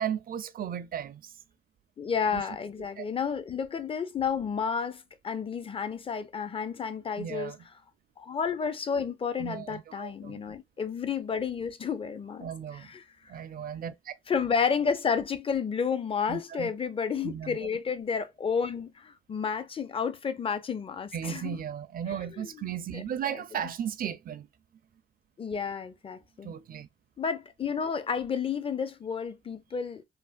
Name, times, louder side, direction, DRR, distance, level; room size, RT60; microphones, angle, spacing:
voice 1, 0.0-1.3 2.3-2.4 3.0-3.1 7.2-7.6 9.4-10.4 12.4-12.9 13.3-14.1 16.3-16.7 17.2-17.6 21.1-24.5 26.4-26.9, right 9 dB, 50° right, 0.4 m, -35 dB
voice 2, 2.0-7.5 8.2-13.0 14.3-21.6 22.3-22.7 22.9-23.0 25.4-26.5 27.2-30.0, left 6 dB, 30° left, 0.5 m, -31 dB
3.3 x 2.1 x 2.5 m
cardioid pair, 90°, 20 cm